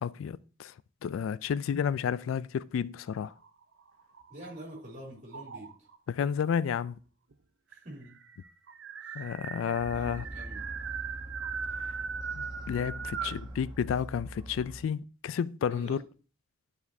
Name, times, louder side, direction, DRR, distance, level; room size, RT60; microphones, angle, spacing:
voice 1, 0.0-0.7 1.0-3.3 6.1-7.0 9.1-10.3 12.3-16.0, left 7 dB, 75° left, 0.3 m, -31 dB
sound 1, 3.3-4.8 5.3-6.0 7.0-7.1 7.3-7.4 7.7-13.5, right 6 dB, 60° right, 0.5 m, -39 dB
voice 2, 4.3-5.9 7.7-8.2 9.0-9.1 9.9-10.7 13.2-13.4 15.7-16.0, right 1 dB, 40° right, 2.9 m, -46 dB
sound 2, 9.8-14.8, right 1 dB, 20° right, 0.9 m, -43 dB
11.0 x 4.9 x 2.7 m
head